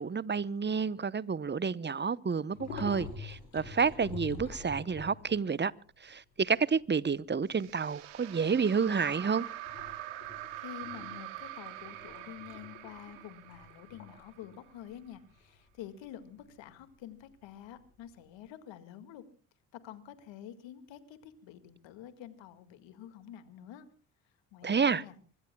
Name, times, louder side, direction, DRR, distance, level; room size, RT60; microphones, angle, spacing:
voice 1, 0.0-5.7 6.0-9.5 24.6-25.0, right 5 dB, 25° right, 0.9 m, -30 dB
sound 1, 2.5-5.4 5.9-6.0 6.4-7.5 7.9-8.2 8.6-9.1 9.6-18.3, left 5 dB, 90° left, 6.3 m, -46 dB
sound 2, 7.5-14.8, right 14 dB, 80° right, 2.4 m, -44 dB
voice 2, 10.3-19.2 19.8-23.9 24.5-25.2, left 10 dB, 70° left, 2.1 m, -48 dB
25.5 x 23.0 x 2.3 m
hypercardioid pair, 45°, 46 cm